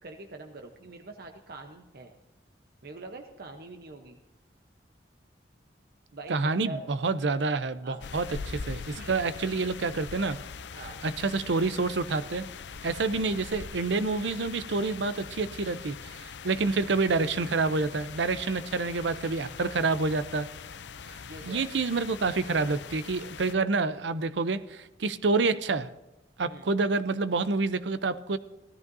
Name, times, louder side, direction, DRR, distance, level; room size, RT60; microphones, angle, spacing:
voice 1, 0.0-2.1 2.8-4.2 6.1-6.8 7.8-8.0 9.0-9.2 10.7-11.0 21.3-21.6 26.5-26.7, right 3 dB, 60° right, 3 dB, 0.9 m, -44 dB
voice 2, 6.3-10.4 11.0-12.5 12.8-20.5 21.1-25.9 26.4-28.4, right 3 dB, 85° right, 13 dB, 0.7 m, -28 dB
sound 1, 8.0-23.6, left 5 dB, 75° left, 0.6 m, -42 dB
18.0 x 13.5 x 2.7 m, 1.1 s
head